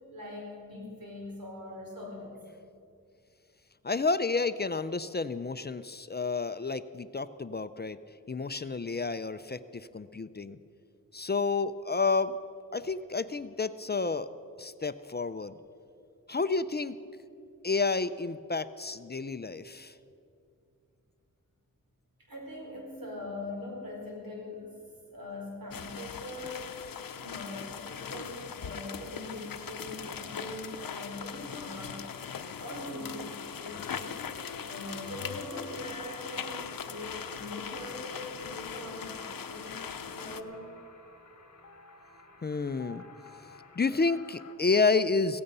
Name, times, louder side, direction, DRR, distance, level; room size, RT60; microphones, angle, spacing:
voice 1, 0.1-2.3 22.3-24.8 25.1-26.8 27.2-32.1 32.6-34.2 34.6-40.7, left 1 dB, 85° right, -1 dB, 4.4 m, -42 dB
voice 2, 3.8-8.0 8.3-10.6 11.1-12.4 12.7-14.3 14.6-15.5 16.3-17.0 17.6-19.9 42.4-43.0 43.8-45.4, left 4 dB, 30° left, 13 dB, 0.5 m, -30 dB
sound 1, 25.7-40.4, left 7 dB, 80° left, 0.7 m, -40 dB
sound 2, 28.3-44.5, left 3 dB, 55° left, 1.4 m, -52 dB
16.5 x 15.5 x 5.5 m, 2.5 s
wide cardioid pair, 80°, 34 cm